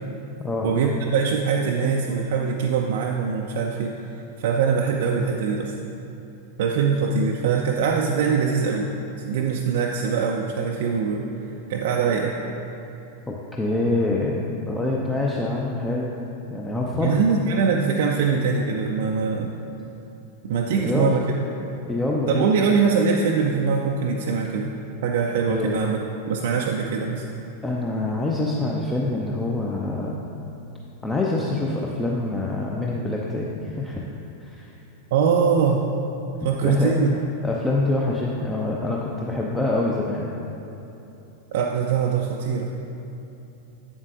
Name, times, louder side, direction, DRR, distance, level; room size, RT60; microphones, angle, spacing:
voice 1, 0.6-4.0 4.4-5.7 6.6-8.9 9.3-11.3 11.7-12.4 17.0-19.6 20.4-21.2 22.3-24.7 25.0-26.0 26.3-27.2 35.1-35.9 36.4-37.2 41.5-42.8, right 5 dB, 55° right, 1 dB, 0.4 m, -22 dB
voice 2, 13.3-16.2 16.5-17.2 20.8-21.1 21.9-22.5 25.5-25.8 27.6-30.2 31.0-34.0 34.4-34.7 36.6-36.9 37.4-40.3, left 2 dB, 10° left, -3 dB, 0.5 m, -25 dB
8.2 x 7.2 x 2.5 m, 3.0 s
figure-of-eight pair, 90°, 0 cm